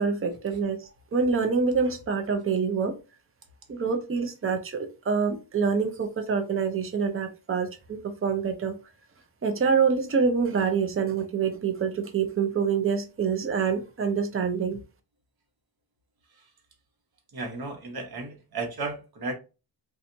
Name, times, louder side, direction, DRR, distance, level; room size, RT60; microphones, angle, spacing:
voice 1, 0.0-3.0 3.7-8.8 9.4-14.8, right 5 dB, 30° right, 0.6 m, -26 dB
voice 2, 17.3-19.4, right 3 dB, 55° right, 1.0 m, -34 dB
4.3 x 2.4 x 2.6 m
wide cardioid pair, 160°, 43 cm